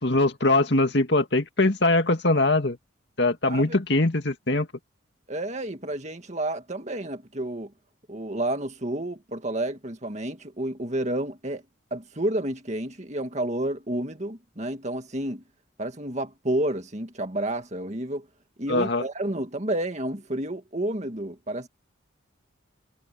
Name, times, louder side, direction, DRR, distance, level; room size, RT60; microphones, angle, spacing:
voice 1, 0.0-2.8 3.2-4.7 18.7-19.0, left 2 dB, 60° left, 2.3 m, -22 dB
voice 2, 3.5-3.8 5.3-7.7 8.1-11.6 11.9-15.4 15.8-18.3 18.6-21.7, right 1 dB, 35° right, 2.0 m, -30 dB
head